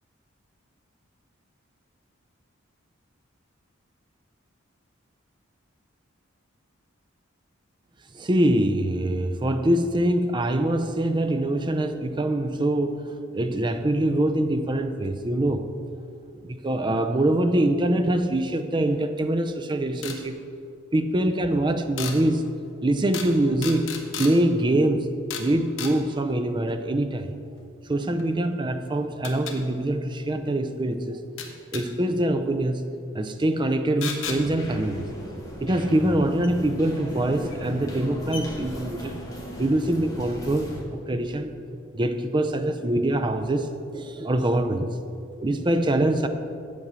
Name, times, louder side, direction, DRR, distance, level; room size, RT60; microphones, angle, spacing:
voice 1, 8.1-13.1 13.3-15.7 16.4-20.4 20.9-22.5 22.8-23.9 24.2-25.1 25.4-27.3 27.9-31.2 31.7-32.8 33.1-35.1 35.6-39.2 39.6-41.5 41.9-44.9 45.4-46.3, right 1 dB, 25° right, 8 dB, 0.5 m, -24 dB
sound 1, 20.0-20.2 22.0-22.2 23.1-23.3 23.6-24.3 25.3-25.5 25.8-25.9 28.2-28.3 29.2-29.6 31.4-31.8 34.0-34.4 36.4-36.5 37.5-37.6 38.0-38.1 38.3-38.4, left 7 dB, 65° left, 1.0 m, -33 dB
sound 2, 34.2-40.8, equal, 20° left, 1.8 m, -37 dB
8.4 x 5.3 x 7.5 m, 2.4 s
head